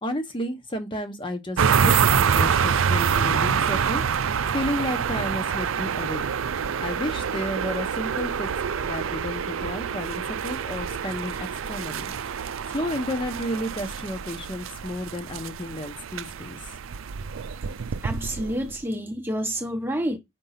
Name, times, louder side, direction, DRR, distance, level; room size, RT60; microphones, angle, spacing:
voice 1, 0.0-4.0 4.5-6.3 6.8-12.1 12.7-16.6, left 1 dB, 25° left, 1.0 m, -32 dB
sound 1, 1.6-18.8, right 7 dB, 90° right, 0.5 m, -26 dB
voice 2, 18.0-20.2, equal, 10° right, 0.9 m, -28 dB
5.3 x 5.2 x 5.7 m
head